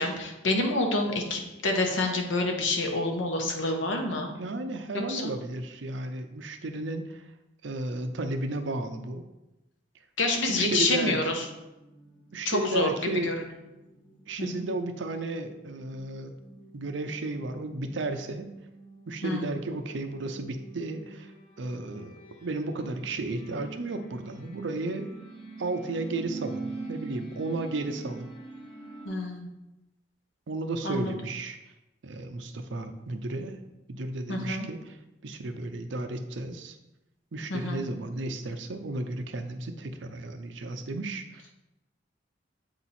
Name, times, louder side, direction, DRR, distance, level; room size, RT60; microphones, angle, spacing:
voice 1, 0.0-4.3 5.1-5.3 10.2-11.4 12.4-12.9 13.2-13.3 14.4-14.6 19.2-19.5 29.0-29.5 30.8-31.1 34.3-34.7 37.5-37.8, left 2 dB, 85° left, 3 dB, 1.0 m, -28 dB
voice 2, 4.4-7.2 7.6-9.2 10.5-11.2 12.3-13.3 14.3-16.4 16.7-18.5 19.1-21.3 21.6-25.1 25.6-28.4 30.5-31.6 32.0-33.6 33.9-35.0 35.2-36.8 37.3-41.4, right 2 dB, 75° right, 7 dB, 0.6 m, -33 dB
sound 1, 11.1-29.1, right 3 dB, 30° left, 1.1 m, -45 dB
8.0 x 2.9 x 4.1 m, 0.97 s
head